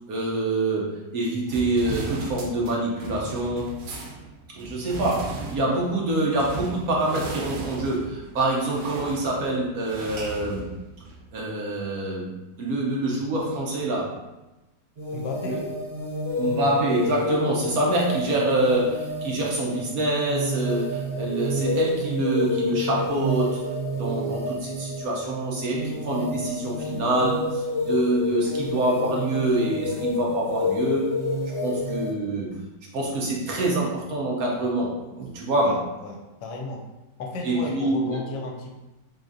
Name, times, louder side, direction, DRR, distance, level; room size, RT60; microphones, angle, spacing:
voice 1, 0.1-3.8 4.5-10.8 11.3-12.3 12.6-14.2 15.4-15.7 16.4-31.2 31.6-32.6 32.9-35.8 37.4-38.2, right 2 dB, 65° right, -2 dB, 0.9 m, -26 dB
sound 1, 1.5-11.3, right 3 dB, 85° right, 1.3 m, -37 dB
sound 2, 15.0-32.1, left 1 dB, 50° right, 1.5 m, -29 dB
voice 2, 15.1-15.6 35.6-36.8 37.2-38.7, left 3 dB, 85° left, 1 dB, 1.3 m, -34 dB
3.9 x 3.3 x 2.5 m, 1.0 s
omnidirectional pair, 1.9 m